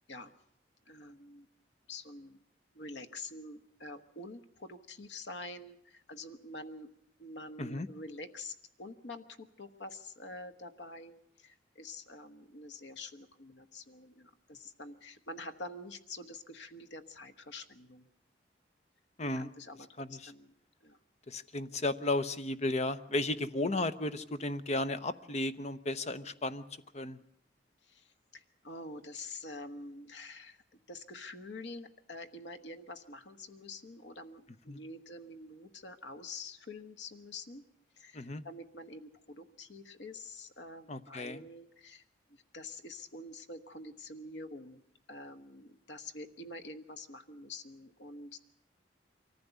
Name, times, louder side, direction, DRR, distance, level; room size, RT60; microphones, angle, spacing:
voice 1, 0.8-1.5 1.9-2.4 2.7-6.9 7.2-18.1 19.2-20.5 20.8-21.0 27.8-37.7 37.9-42.0 42.3-44.8 45.1-48.4, left 2 dB, 75° left, 9 dB, 1.2 m, -47 dB
voice 2, 19.2-19.5 20.0-20.3 21.3-26.6 26.9-27.2 34.7-34.8 38.1-38.4 40.9-41.4, left 2 dB, 40° left, 12 dB, 0.8 m, -34 dB
23.5 x 15.0 x 8.1 m, 0.72 s
head